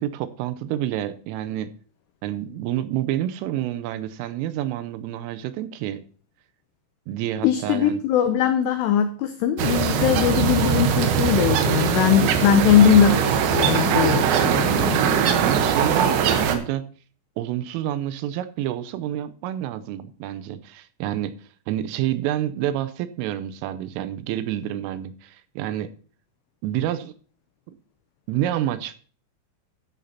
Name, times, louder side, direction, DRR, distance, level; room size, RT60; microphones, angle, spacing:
voice 1, 0.0-1.7 2.2-6.0 7.1-8.0 15.4-16.9 17.4-21.4 21.7-25.9 26.6-27.1 27.7-27.8 28.3-29.0, right 12 dB, 90° right, 3.2 m, -28 dB
voice 2, 7.4-15.0, left 9 dB, 90° left, 2.4 m, -20 dB
sound 1, 9.6-16.6, right 7 dB, 75° right, 3.2 m, -21 dB
13.0 x 10.0 x 2.8 m
omnidirectional pair, 5.8 m